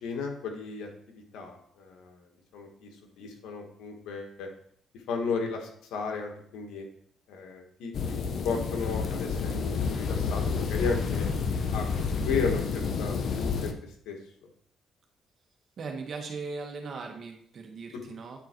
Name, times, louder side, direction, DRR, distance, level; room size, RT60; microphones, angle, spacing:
voice 1, 0.0-2.2 2.5-4.5 5.1-6.8 7.3-8.2 8.4-11.2 11.7-13.7 14.0-14.2, left 5 dB, 90° left, 3 dB, 1.6 m, -34 dB
sound 1, 7.9-13.7, left 5 dB, 60° left, 0.9 m, -29 dB
voice 2, 15.8-18.4, right 4 dB, 55° right, 3 dB, 1.7 m, -38 dB
9.5 x 4.6 x 4.5 m, 0.64 s
cardioid pair, 90°, 0 cm